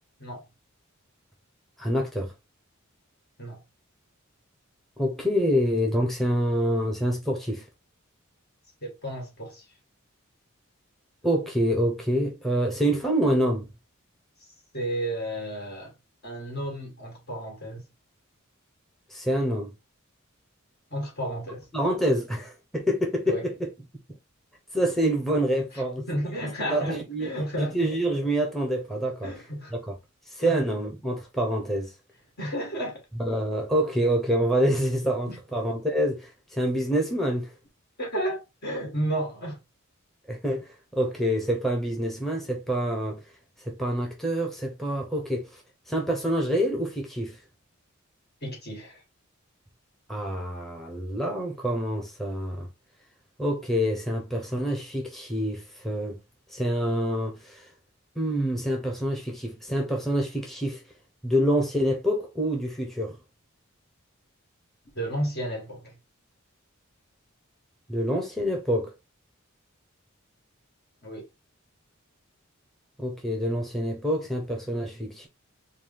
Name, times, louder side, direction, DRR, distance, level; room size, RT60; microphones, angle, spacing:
voice 1, 1.8-2.3 5.0-7.6 11.2-13.7 19.1-19.7 21.7-23.7 24.7-26.0 26.7-27.3 27.6-29.3 29.7-29.8 30.3-31.9 33.2-37.5 40.3-43.2 43.6-47.4 50.1-52.7 53.4-56.2 56.5-57.7 58.2-60.8 61.2-63.2 67.9-68.9 73.0-75.3, equal, ahead, 0.8 m, -26 dB
voice 2, 8.8-9.7 14.7-15.9 16.2-17.8 20.9-21.7 23.3-23.5 25.7-25.8 26.1-27.9 29.2-29.7 30.4-30.6 32.4-33.0 35.3-35.4 38.0-39.6 48.4-49.0 64.9-66.0 71.0-71.3, right 1 dB, 50° left, 1.9 m, -32 dB
4.7 x 2.3 x 3.6 m
head